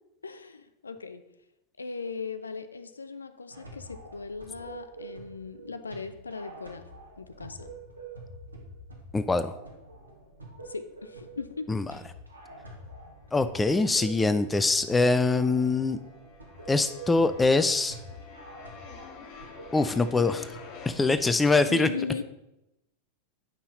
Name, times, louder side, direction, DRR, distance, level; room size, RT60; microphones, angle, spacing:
voice 1, 0.2-1.2 1.8-6.8 7.2-7.7 10.6-11.7 21.7-22.2, left 4 dB, 75° left, 10 dB, 0.5 m, -38 dB
sound 1, 3.5-21.4, right 2 dB, 80° right, 1.5 m, -47 dB
voice 2, 9.1-9.5 11.7-11.9 13.3-16.0 16.7-18.0 19.7-20.5 20.9-21.9, left 3 dB, 10° left, 11 dB, 0.5 m, -23 dB
sound 2, 12.7-13.5 13.7-20.9, left 5 dB, 40° left, 1.4 m, -49 dB
8.5 x 5.6 x 4.0 m, 0.90 s
figure-of-eight pair, 90°, 0 cm